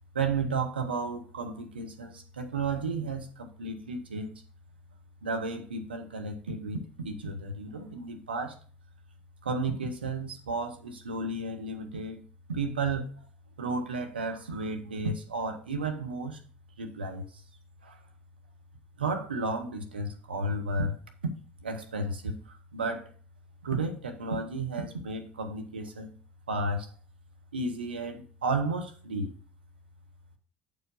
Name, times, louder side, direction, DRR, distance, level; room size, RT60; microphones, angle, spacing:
voice 1, 0.1-4.3 5.2-8.6 9.4-12.2 12.5-13.1 13.6-16.4 16.8-17.3 17.8-18.0 19.0-21.0 21.6-23.1 23.6-26.1 26.5-26.9 27.5-29.3, right 3 dB, 85° right, 0.9 m, -33 dB
7.9 x 4.8 x 5.4 m
figure-of-eight pair, 60°, 5 cm